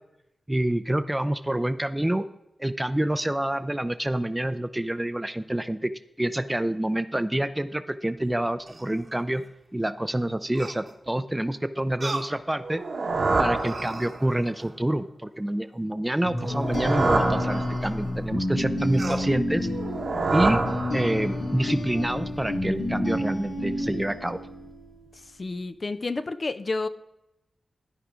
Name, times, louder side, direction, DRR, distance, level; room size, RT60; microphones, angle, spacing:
voice 1, 0.5-2.3 2.6-5.9 6.2-9.4 9.7-12.8 13.4-19.7 20.3-20.7 20.9-24.4, right 1 dB, 15° right, 13 dB, 0.5 m, -27 dB
sound 1, 8.2-9.5 10.5-11.1 12.0-12.4 13.0-13.1 13.5-14.9 16.3-17.9 18.9-19.3, right 2 dB, 45° right, 1.1 m, -39 dB
sound 2, 12.6-14.4 16.4-18.2 19.7-21.5, right 3 dB, 75° right, 1.2 m, -27 dB
sound 3, 16.2-25.0, left 1 dB, 85° left, 2.2 m, -29 dB
voice 2, 25.4-26.9, left 3 dB, 50° left, 12 dB, 0.4 m, -30 dB
13.0 x 4.7 x 3.7 m, 0.90 s
cardioid pair, 45°, 0 cm